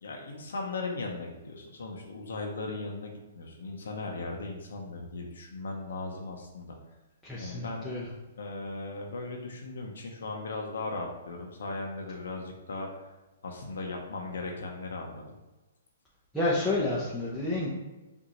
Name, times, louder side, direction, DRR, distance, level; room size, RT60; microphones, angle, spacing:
voice 1, 0.0-6.8 7.4-7.9 8.4-13.2 13.4-15.2, left 3 dB, 80° left, 1 dB, 0.8 m, -37 dB
voice 2, 7.2-8.0 16.3-17.7, left 2 dB, ahead, -9 dB, 0.8 m, -29 dB
5.1 x 2.7 x 3.0 m, 1.1 s
hypercardioid pair, 140°, 0 cm